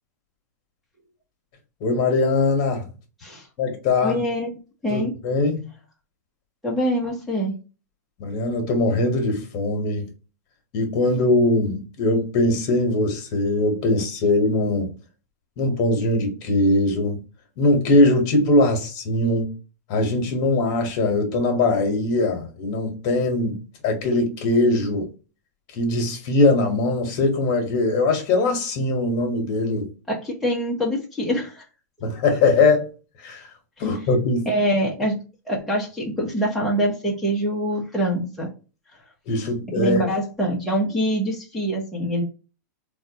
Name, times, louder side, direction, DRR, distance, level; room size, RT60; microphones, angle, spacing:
voice 1, 1.8-2.9 3.6-4.2 4.9-5.7 8.2-10.1 10.7-14.9 15.6-17.2 17.6-19.5 19.9-23.6 23.8-25.1 25.7-29.9 32.0-32.9 33.2-33.5 33.8-34.5 39.3-40.0, left 2 dB, 40° left, 1.2 m, -21 dB
voice 2, 4.0-4.5 4.8-5.1 6.6-7.5 30.1-31.6 34.5-35.2 35.5-38.5 39.7-42.2, equal, ahead, 0.8 m, -24 dB
3.8 x 2.4 x 2.8 m
supercardioid pair, 145°, 9 cm